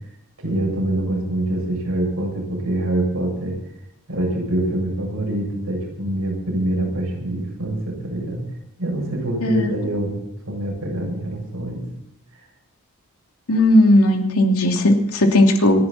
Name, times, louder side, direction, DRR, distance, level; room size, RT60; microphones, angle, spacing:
voice 1, 0.4-3.6 4.1-8.4 8.8-10.2 10.4-11.8, right 1 dB, 70° right, -1 dB, 7.9 m, -25 dB
voice 2, 9.4-9.7 13.5-15.9, left 1 dB, 75° left, 2 dB, 2.9 m, -16 dB
28.0 x 11.0 x 4.3 m, 0.78 s
head